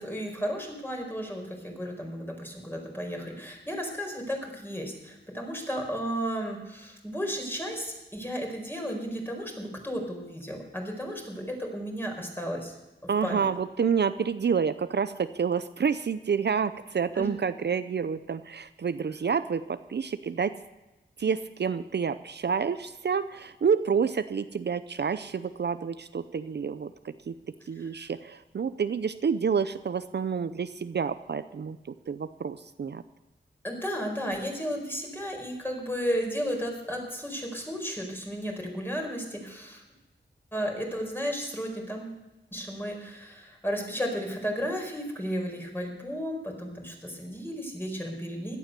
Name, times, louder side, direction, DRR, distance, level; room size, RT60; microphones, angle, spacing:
voice 1, 0.0-12.7 13.0-13.5 17.1-17.2 27.7-28.1 33.6-39.8 40.5-42.2 42.5-48.6, equal, 10° left, 1 dB, 4.7 m, -34 dB
voice 2, 13.1-20.5 21.2-27.3 27.7-31.8 32.1-33.0, right 6 dB, 60° right, 12 dB, 0.6 m, -28 dB
16.5 x 12.0 x 6.8 m, 1.0 s
wide cardioid pair, 85°, 19 cm